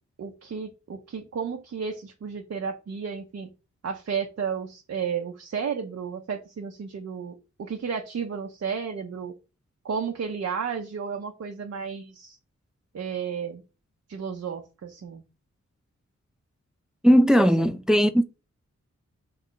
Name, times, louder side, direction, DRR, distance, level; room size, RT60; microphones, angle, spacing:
voice 1, 0.2-3.5 3.8-9.3 9.8-12.4 12.9-13.6 14.1-15.2 17.4-17.7, right 6 dB, 55° right, 0.6 m, -33 dB
voice 2, 17.0-18.4, equal, ahead, 0.3 m, -18 dB
3.5 x 3.2 x 3.7 m
wide cardioid pair, 65°, 29 cm